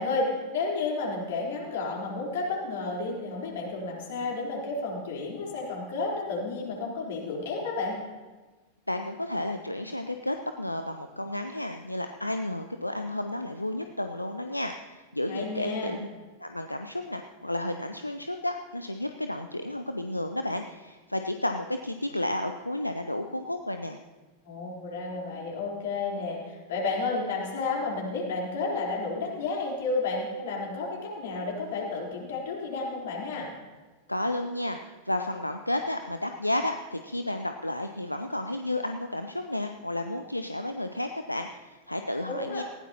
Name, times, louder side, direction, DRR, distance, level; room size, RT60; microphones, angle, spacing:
voice 1, 0.0-8.0 15.3-16.0 24.4-33.5 42.3-42.6, left 3 dB, 60° left, -2 dB, 3.9 m, -31 dB
voice 2, 8.9-16.1 16.4-24.0 34.1-42.6, left 1 dB, 85° left, 7 dB, 0.6 m, -32 dB
19.0 x 16.0 x 2.9 m, 1.3 s
figure-of-eight pair, 90°, 0 cm